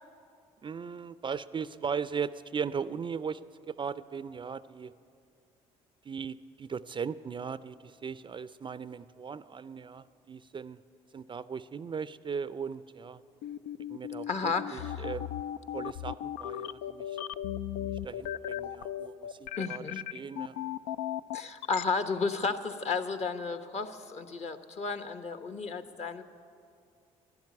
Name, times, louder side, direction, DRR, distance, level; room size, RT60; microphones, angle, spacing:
voice 1, 0.6-3.4 3.7-4.9 6.0-10.8 11.1-13.2 13.9-15.3 15.7-17.2 17.8-19.8 20.1-20.6, right 6 dB, 30° right, 16 dB, 0.4 m, -38 dB
sound 1, 13.4-21.8, left 11 dB, 85° left, 0.4 m, -36 dB
voice 2, 14.3-15.1 19.5-20.0 21.3-26.2, left 4 dB, 45° left, 10 dB, 1.0 m, -33 dB
12.0 x 11.0 x 9.5 m, 2.4 s
hypercardioid pair, 60°, 16 cm